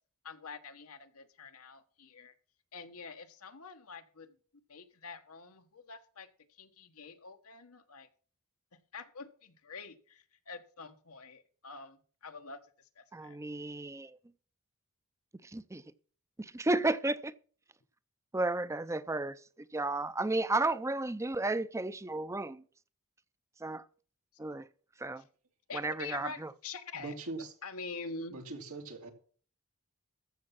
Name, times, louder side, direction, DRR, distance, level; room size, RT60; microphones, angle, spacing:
voice 1, 0.2-2.3 2.7-4.3 4.7-6.3 6.6-8.1 8.9-12.6 13.0-13.4 25.7-27.2 27.6-28.4, left 4 dB, 90° left, 1.4 m, -46 dB
voice 2, 13.1-14.2 15.5-15.8 16.4-17.3 18.3-19.3 19.7-22.6 23.6-23.8 24.4-24.7 25.0-25.2 25.7-26.5, right 2 dB, 15° right, 0.5 m, -33 dB
voice 3, 26.9-27.5 28.3-29.1, right 3 dB, 90° right, 2.4 m, -41 dB
14.0 x 6.9 x 5.9 m
head